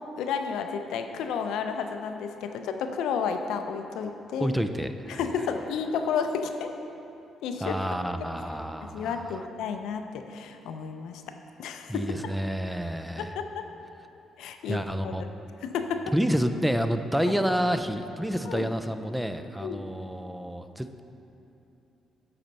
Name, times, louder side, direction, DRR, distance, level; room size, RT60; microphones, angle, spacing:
voice 1, 0.2-4.5 5.1-6.7 7.4-7.8 8.9-11.2 11.6-12.3 13.2-13.6 14.4-15.3 15.6-16.1 17.3-17.4 18.5-18.7 19.6-19.9, left 6 dB, 85° left, 6 dB, 0.4 m, -32 dB
voice 2, 4.4-5.2 7.6-9.5 11.9-13.3 14.7-15.3 16.1-21.0, equal, 5° right, 8 dB, 0.3 m, -29 dB
7.8 x 4.3 x 5.3 m, 2.8 s
cardioid pair, 90°, 0 cm